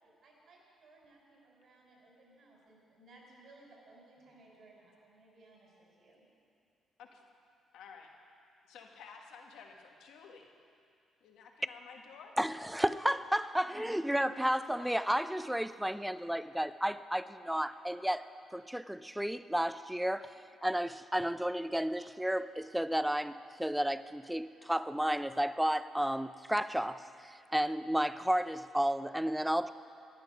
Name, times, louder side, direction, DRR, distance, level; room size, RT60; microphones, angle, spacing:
voice 1, 0.2-6.2, right 2 dB, 65° right, -2 dB, 4.2 m, -60 dB
voice 2, 7.7-8.1 8.6-10.5 11.2-12.3 13.8-13.9 17.7-17.8, left 6 dB, 85° left, 2 dB, 1.4 m, -52 dB
voice 3, 12.4-18.2 18.5-20.3 20.6-29.7, equal, 5° right, 13 dB, 0.4 m, -32 dB
14.0 x 10.0 x 6.1 m, 2.4 s
cardioid pair, 90°, 0 cm